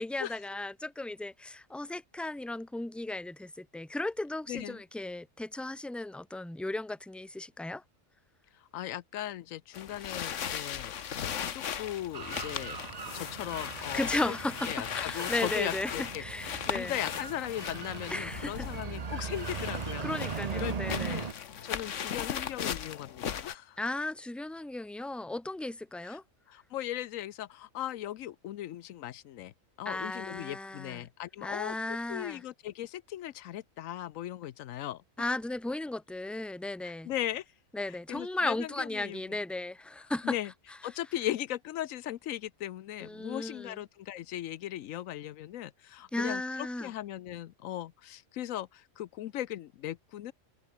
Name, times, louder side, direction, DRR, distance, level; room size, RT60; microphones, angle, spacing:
voice 1, 0.0-7.8 13.9-17.0 18.1-18.7 20.0-21.3 23.8-26.2 29.8-31.0 31.4-32.4 35.2-37.1 37.7-40.4 43.0-43.8 46.1-46.9, left 2 dB, ahead, 1.2 m, -35 dB
voice 2, 4.5-4.8 8.7-12.8 13.1-14.3 14.6-21.3 21.6-23.8 26.1-26.2 26.5-29.5 29.8-31.8 32.1-35.0 36.8-37.4 38.1-39.2 40.2-40.5 40.8-50.3, left 12 dB, 90° left, 1.1 m, -38 dB
sound 1, 9.7-23.5, left 8 dB, 70° left, 1.4 m, -38 dB
sound 2, 12.1-21.3, right 6 dB, 35° right, 0.7 m, -39 dB
omnidirectional pair, 1.3 m